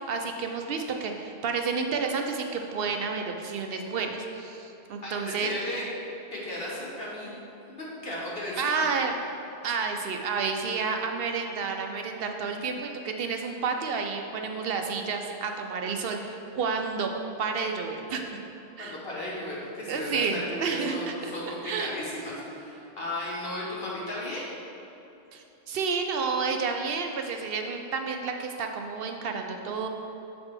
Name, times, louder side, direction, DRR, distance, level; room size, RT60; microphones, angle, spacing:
voice 1, 0.1-5.5 8.6-9.2 9.6-17.1 17.4-18.4 18.8-19.0 19.9-21.3 21.6-21.9 25.3-29.9, right 5 dB, 70° right, 4 dB, 0.8 m, -30 dB
voice 2, 5.0-5.8 6.3-7.3 7.8-8.8 18.8-24.5, left 1 dB, 65° left, -6 dB, 1.7 m, -35 dB
7.1 x 4.1 x 4.8 m, 3.0 s
omnidirectional pair, 1.1 m